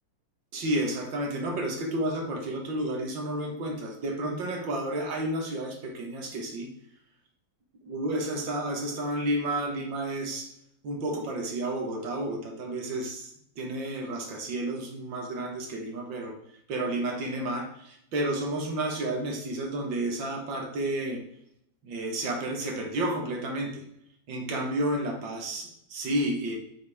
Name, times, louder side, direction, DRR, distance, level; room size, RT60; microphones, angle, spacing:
voice 1, 0.5-6.7 7.9-10.5 10.8-16.4 16.7-21.2 21.8-23.8 24.3-26.6, right 1 dB, 75° right, 2 dB, 2.2 m, -31 dB
8.4 x 6.1 x 3.6 m, 0.75 s
omnidirectional pair, 2.0 m